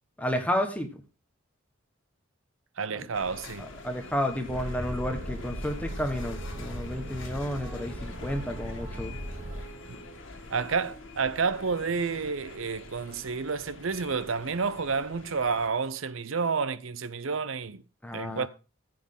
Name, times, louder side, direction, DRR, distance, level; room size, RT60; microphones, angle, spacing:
voice 1, 0.2-1.0 2.9-3.1 3.6-9.2 18.0-18.5, left 1 dB, 5° left, 1.4 m, -31 dB
voice 2, 2.8-3.7 10.5-17.8 18.1-18.5, right 5 dB, 70° right, 0.7 m, -30 dB
sound 1, 3.1-15.7, left 3 dB, 60° left, 2.2 m, -46 dB
Boat Water vehicle, 4.5-9.7, equal, 35° right, 2.0 m, -38 dB
Female singing, 5.3-11.8, right 3 dB, 10° right, 2.6 m, -51 dB
14.0 x 7.8 x 3.8 m
head